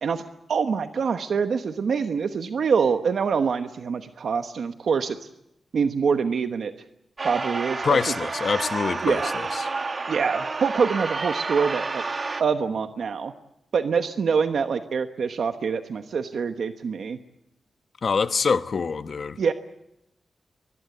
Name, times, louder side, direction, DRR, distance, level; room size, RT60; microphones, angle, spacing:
voice 1, 0.0-5.2 5.7-6.7 7.2-8.0 9.0-9.3 10.1-12.0 12.4-13.3 13.7-17.2 19.4-19.5, right 6 dB, 75° right, 1.1 m, -25 dB
sound 1, 7.2-12.4, right 3 dB, 40° right, 1.3 m, -30 dB
voice 2, 7.8-9.7 18.0-19.4, left 5 dB, 60° left, 1.0 m, -25 dB
24.5 x 21.5 x 8.0 m
wide cardioid pair, 95°, 0 cm